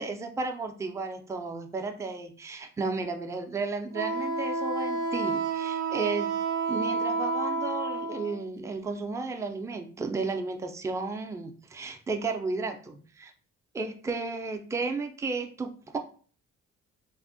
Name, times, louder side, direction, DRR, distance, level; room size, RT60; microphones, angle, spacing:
voice 1, 0.0-6.4 6.7-13.3 13.7-16.0, right 3 dB, 10° right, 5 dB, 0.3 m, -33 dB
Wind instrument woodwind instrument, 3.9-8.4, right 3 dB, 80° right, 0.5 m, -30 dB
3.4 x 2.0 x 2.5 m, 0.43 s
cardioid pair, 90°, 30 cm